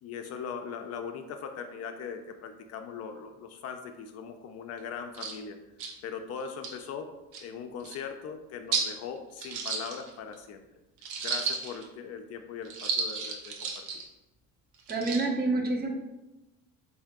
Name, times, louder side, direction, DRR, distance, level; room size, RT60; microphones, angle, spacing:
voice 1, 0.0-5.6 6.0-7.1 7.4-10.6 11.2-13.8, left 6 dB, 55° left, 6 dB, 0.4 m, -40 dB
sound 1, 4.8-4.9 5.1-5.3 5.8-5.9 6.5-6.7 7.3-7.4 7.8-8.0 8.7-8.9 9.4-10.3 11.0-11.8 12.6-14.0 14.8-15.3, right 5 dB, 75° right, 0.8 m, -33 dB
voice 2, 14.9-15.9, right 2 dB, 30° right, 2 dB, 0.7 m, -27 dB
3.6 x 2.7 x 3.5 m, 1.0 s
cardioid pair, 105°, 31 cm